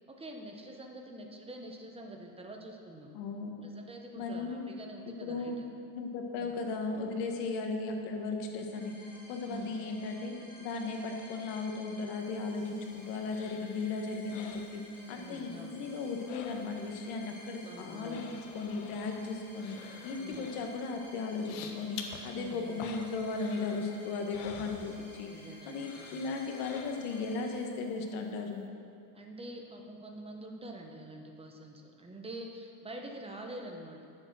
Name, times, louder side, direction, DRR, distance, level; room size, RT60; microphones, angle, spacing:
voice 1, 0.2-3.1 3.6-5.6 6.4-6.6 7.4-7.6 9.4-9.7 12.6-12.7 14.9-15.8 17.6-18.3 20.2-20.5 22.3-22.8 25.3-26.4 29.1-34.0, right 1 dB, 10° right, 2 dB, 1.1 m, -46 dB
voice 2, 3.1-3.7 4.2-4.7 5.1-5.6 5.9-9.0 9.3-12.6 12.9-14.8 15.1-25.3 25.6-28.7, left 4 dB, 65° left, 3 dB, 1.6 m, -36 dB
sound 1, 8.7-27.7, left 1 dB, 5° left, 3.0 m, -54 dB
sound 2, 12.3-15.4 15.7-17.0 17.3-25.4 25.8-27.3 27.7-27.8, left 6 dB, 80° left, 1.3 m, -49 dB
10.5 x 7.5 x 6.3 m, 2.5 s
supercardioid pair, 135°, 48 cm